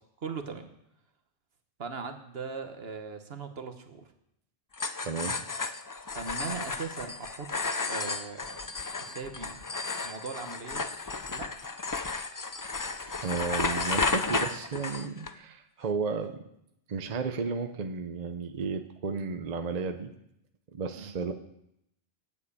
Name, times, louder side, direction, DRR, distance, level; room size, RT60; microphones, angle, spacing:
voice 1, 0.2-0.7 1.8-4.0 6.1-9.6 10.0-10.8 11.3-11.5 14.3-14.4 20.9-21.1, right 5 dB, 65° right, 7 dB, 1.3 m, -39 dB
sound 1, 4.7-15.3, left 3 dB, 30° left, 0.3 m, -33 dB
voice 2, 5.0-5.4 13.2-16.4 16.9-20.1 20.7-21.3, right 5 dB, 40° right, 7 dB, 0.8 m, -33 dB
9.6 x 7.6 x 8.4 m, 0.79 s
omnidirectional pair, 1.1 m